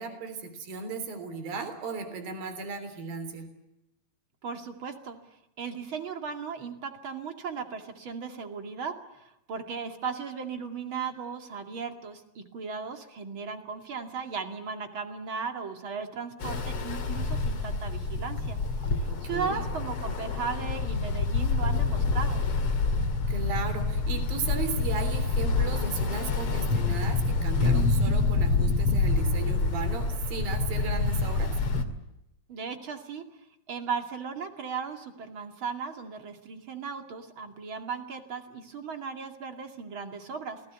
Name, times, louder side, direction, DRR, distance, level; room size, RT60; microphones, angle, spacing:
voice 1, 0.0-3.5 19.1-19.6 23.3-31.5, right 4 dB, 70° right, 10 dB, 5.1 m, -36 dB
voice 2, 4.4-5.2 5.6-18.6 18.9-22.4 32.5-33.3 33.7-40.7, right 5 dB, 40° right, 6 dB, 2.7 m, -36 dB
Ocean, 16.4-31.8, left 3 dB, 45° left, 2.6 m, -27 dB
27.5 x 19.5 x 8.2 m, 0.89 s
omnidirectional pair, 4.3 m